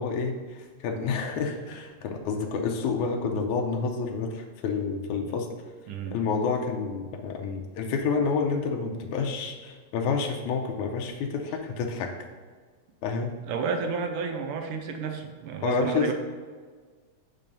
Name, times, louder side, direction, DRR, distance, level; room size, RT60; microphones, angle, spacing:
voice 1, 0.0-5.5 6.1-12.1 13.0-13.4 15.6-16.1, left 5 dB, 90° left, 2 dB, 2.2 m, -29 dB
voice 2, 5.9-6.2 13.4-16.1, right 5 dB, 85° right, 4 dB, 1.2 m, -31 dB
8.8 x 3.8 x 5.2 m, 1.5 s
omnidirectional pair, 3.3 m